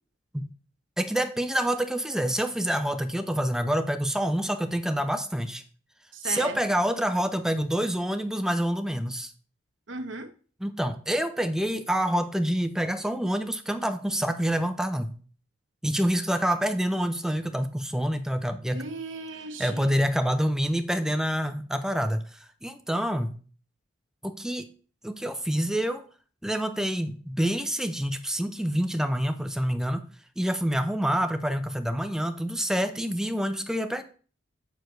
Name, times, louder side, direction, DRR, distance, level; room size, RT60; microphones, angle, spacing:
voice 1, 1.0-5.6 6.2-9.3 10.6-15.2 15.8-18.8 19.6-23.4 24.2-24.7 25.0-26.0 26.4-30.0 30.4-34.0, equal, 5° right, 0.5 m, -27 dB
voice 2, 6.1-6.8 9.9-10.3 18.7-19.9, right 3 dB, 75° right, 0.9 m, -37 dB
7.7 x 6.7 x 3.1 m
head